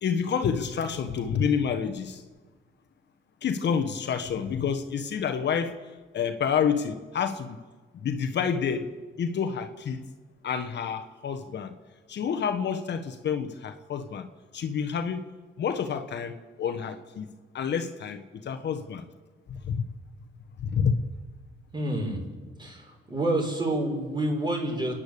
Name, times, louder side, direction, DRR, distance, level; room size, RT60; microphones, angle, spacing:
voice 1, 0.0-2.2 3.4-5.8 6.1-7.6 7.9-8.9 9.2-10.1 10.4-11.7 12.1-14.3 14.5-15.3 15.6-19.1 19.5-19.9 20.6-21.0, left 7 dB, 60° left, 1.4 m, -29 dB
voice 2, 21.7-22.2 22.6-24.9, right 1 dB, 20° right, 6.6 m, -28 dB
28.5 x 10.5 x 8.6 m
cardioid pair, 90°, 20 cm